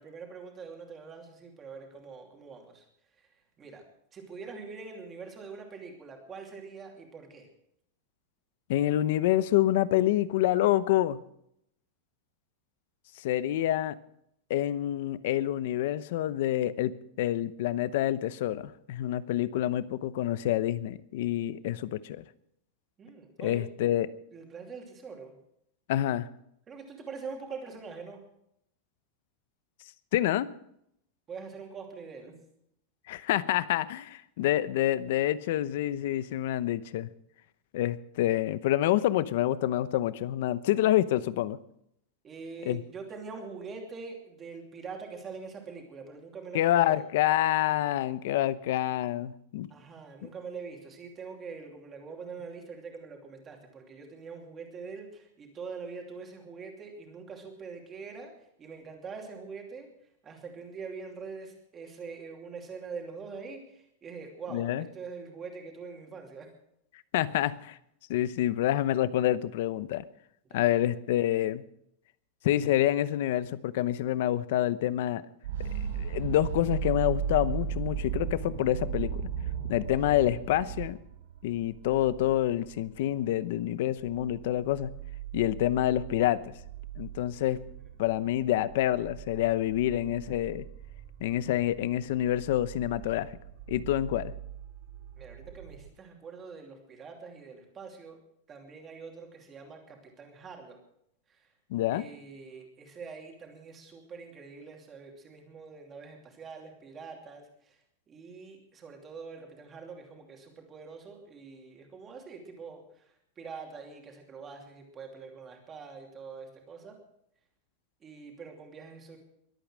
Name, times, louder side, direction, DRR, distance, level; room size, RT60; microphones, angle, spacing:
voice 1, 0.0-2.9 3.1-3.8 4.1-7.5 23.0-23.7 24.3-25.3 26.7-28.2 31.3-32.3 42.2-47.0 49.7-59.9 60.2-66.5 70.5-71.0 87.5-87.6 95.2-98.2 98.5-100.8 101.3-101.5 101.9-107.8 108.1-117.0 118.0-119.2, right 5 dB, 15° right, 2 dB, 2.7 m, -44 dB
voice 2, 8.7-11.2 13.2-14.0 14.5-22.2 23.4-24.1 25.9-26.3 30.1-30.5 33.1-37.1 37.7-41.6 42.7-42.8 46.5-49.7 64.5-64.8 67.1-67.8 68.1-70.0 70.5-71.6 72.4-75.2 75.6-79.2 79.7-81.0 81.4-84.9 85.3-86.5 87.0-87.6 88.0-90.7 91.2-93.3 93.7-94.3 101.7-102.0, left 13 dB, 55° left, 16 dB, 0.8 m, -27 dB
sound 1, 75.4-80.9, right 7 dB, 85° right, 7.5 m, -33 dB
entrando a algún lugar, 79.5-95.9, right 12 dB, 65° right, 4.8 m, -46 dB
22.5 x 8.8 x 6.3 m, 0.75 s
supercardioid pair, 175°, 0 cm